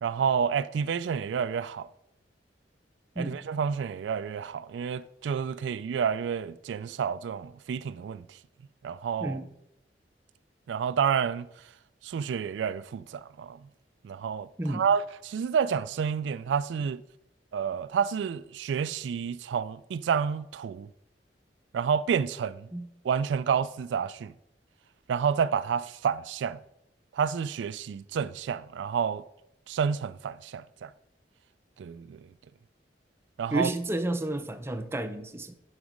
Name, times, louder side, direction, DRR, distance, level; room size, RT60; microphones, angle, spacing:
voice 1, 0.0-1.9 3.2-8.4 8.8-9.4 10.7-11.5 12.0-13.6 14.0-17.0 17.5-20.9 21.7-22.7 23.0-24.3 25.1-26.6 27.1-29.2 29.7-30.9 31.8-32.3 33.4-33.7, right 7 dB, 80° right, 0.3 m, -29 dB
voice 2, 33.5-35.5, right 1 dB, 15° right, 0.5 m, -31 dB
11.0 x 4.0 x 5.0 m
head